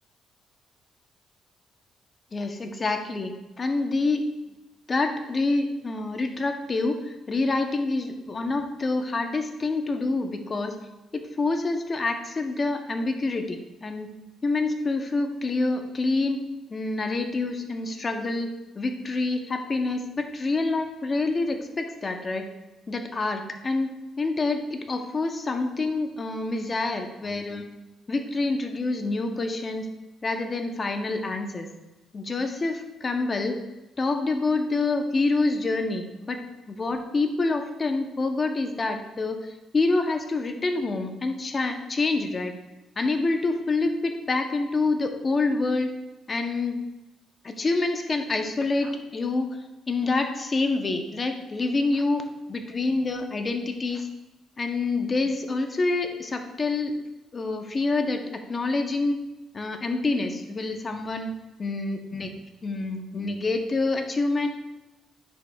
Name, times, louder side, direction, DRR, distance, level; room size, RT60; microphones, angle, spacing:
voice 1, 2.3-4.2 4.9-10.7 11.1-14.1 14.4-16.4 16.7-18.5 18.7-22.4 22.9-23.9 24.2-27.6 28.1-29.9 30.2-31.7 32.1-33.6 34.0-36.4 36.7-42.5 43.0-45.9 46.3-46.8 47.4-49.5 49.9-52.2 52.5-54.1 54.6-56.9 57.3-58.2 58.5-59.2 59.5-61.3 61.6-62.3 62.6-64.5, left 3 dB, 35° left, 5 dB, 0.8 m, -27 dB
9.7 x 4.9 x 2.4 m, 1.0 s
cardioid pair, 90°, 0 cm